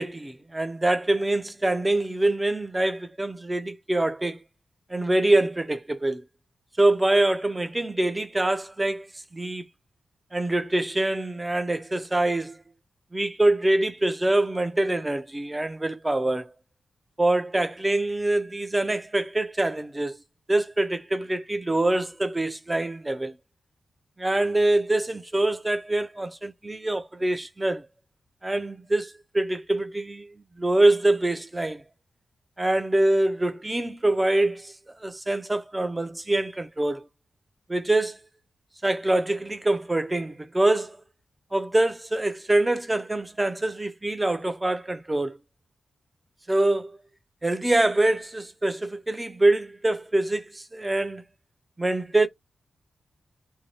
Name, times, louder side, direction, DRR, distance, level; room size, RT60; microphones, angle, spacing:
voice 1, 0.0-4.4 4.9-6.2 6.8-9.1 9.3-9.6 10.3-12.6 13.1-16.5 17.2-20.2 20.5-23.3 24.2-27.9 28.4-30.3 30.6-31.8 32.6-34.7 35.0-37.1 37.7-38.2 38.8-41.0 41.5-45.4 46.5-46.9 47.4-51.2 51.8-52.3, right 2 dB, 15° right, 0.5 m, -24 dB
2.7 x 2.2 x 3.0 m
wide cardioid pair, 105°, 0 cm